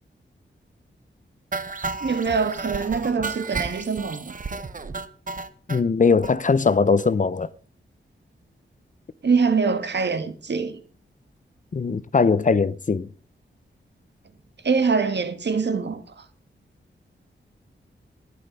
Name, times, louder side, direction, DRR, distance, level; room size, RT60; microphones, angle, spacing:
sound 1, 1.5-5.8 6.2-6.3 6.7-6.8 7.0-7.1 7.4-7.5, right 4 dB, 40° right, 1.2 m, -32 dB
voice 1, 2.0-4.3 9.2-10.8 14.6-16.2, right 5 dB, 60° right, 1.7 m, -24 dB
voice 2, 5.7-7.5 11.7-13.1, left 4 dB, 40° left, 0.7 m, -20 dB
14.0 x 11.0 x 5.5 m
wide cardioid pair, 115°, 20 cm